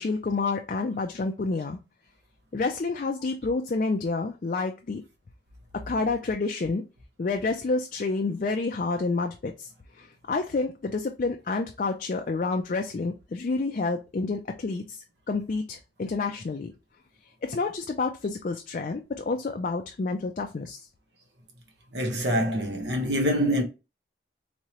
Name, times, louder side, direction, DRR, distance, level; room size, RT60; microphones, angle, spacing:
voice 1, 0.0-1.8 2.5-5.0 5.7-6.8 7.2-9.7 9.9-16.7 17.4-20.9, left 3 dB, 45° left, 0.4 m, -29 dB
voice 2, 21.9-23.6, equal, 80° right, 0.9 m, -25 dB
3.6 x 3.0 x 2.9 m
head